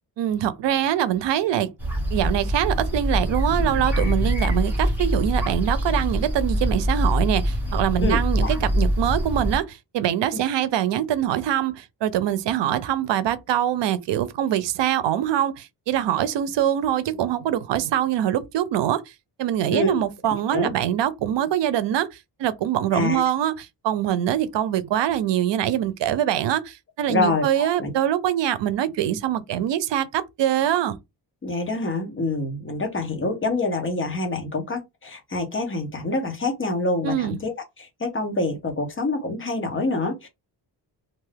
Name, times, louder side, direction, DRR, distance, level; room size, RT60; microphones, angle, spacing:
voice 1, 0.2-1.7 2.1-19.0 19.4-30.9 37.0-37.4, right 11 dB, 85° right, 0.5 m, -24 dB
sound 1, 1.8-9.6, equal, 5° right, 1.0 m, -24 dB
voice 2, 8.0-8.5 10.3-10.4 19.7-20.0 20.5-20.7 22.9-23.2 27.1-27.9 31.4-40.3, left 2 dB, 30° left, 0.7 m, -26 dB
2.6 x 2.3 x 3.2 m
wide cardioid pair, 175°, 42 cm